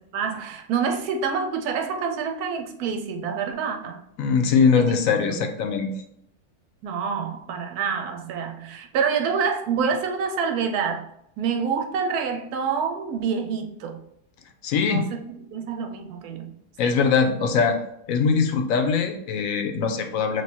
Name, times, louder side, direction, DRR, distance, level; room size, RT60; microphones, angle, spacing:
voice 1, 0.0-4.0 5.3-5.5 6.8-11.1 11.4-14.0 14.8-16.9, right 6 dB, 90° right, 4 dB, 1.2 m, -27 dB
voice 2, 4.2-5.9 14.6-15.1 16.8-17.8 18.1-20.4, left 5 dB, 70° left, 5 dB, 1.0 m, -21 dB
3.4 x 3.2 x 4.2 m, 0.75 s
omnidirectional pair, 1.6 m